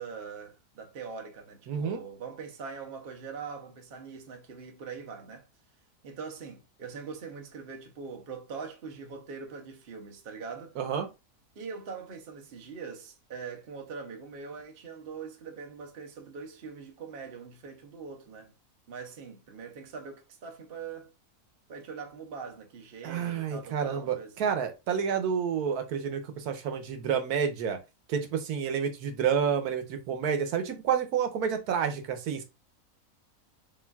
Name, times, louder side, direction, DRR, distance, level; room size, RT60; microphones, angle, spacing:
voice 1, 0.0-5.5 6.0-10.8 11.5-18.5 18.9-21.1 21.7-24.6, right 5 dB, 45° right, 1.0 m, -42 dB
voice 2, 1.7-2.0 10.8-11.1 23.0-27.8 28.1-32.4, right 7 dB, 90° right, 1.3 m, -29 dB
7.1 x 2.5 x 2.3 m
omnidirectional pair, 1.6 m